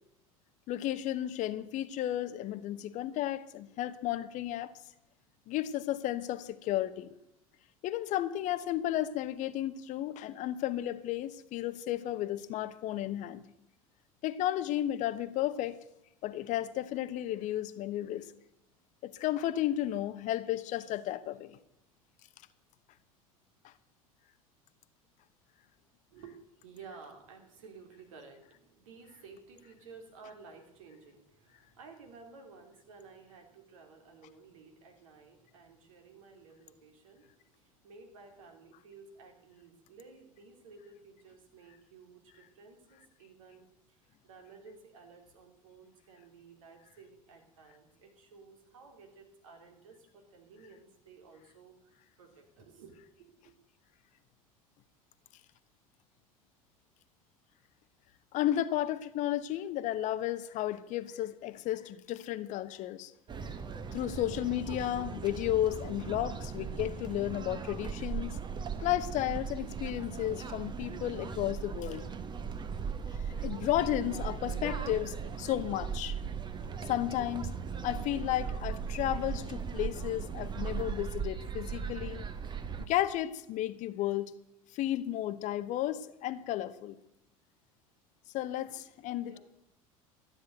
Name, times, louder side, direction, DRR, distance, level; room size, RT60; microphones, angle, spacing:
voice 1, 0.7-4.7 5.5-7.1 7.8-13.4 14.2-15.8 16.2-18.3 19.0-21.6 23.6-23.7 58.3-63.1 63.9-68.4 68.8-72.0 73.4-76.2 76.8-77.5 77.8-82.2 82.8-84.3 84.7-87.0 88.3-89.4, left 13 dB, 45° left, 0.8 m, -33 dB
voice 2, 26.1-53.3 88.7-89.4, right 4 dB, 65° right, 3.0 m, -54 dB
sound 1, 63.3-82.9, right 6 dB, 25° right, 1.2 m, -38 dB
13.0 x 9.4 x 7.9 m
figure-of-eight pair, 70°, 18 cm